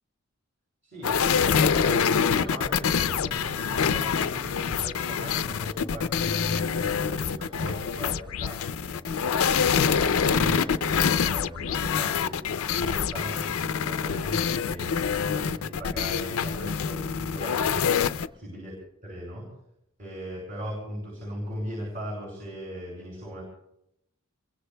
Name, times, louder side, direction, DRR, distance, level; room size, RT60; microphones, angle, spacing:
voice 1, 0.8-15.0 15.2-17.9 18.4-18.7 19.0-19.5 20.0-23.4, equal, 40° right, -3 dB, 6.7 m, -38 dB
sound 1, 1.0-18.3, left 6 dB, 80° left, 0.5 m, -25 dB
27.5 x 23.0 x 2.2 m, 0.80 s
head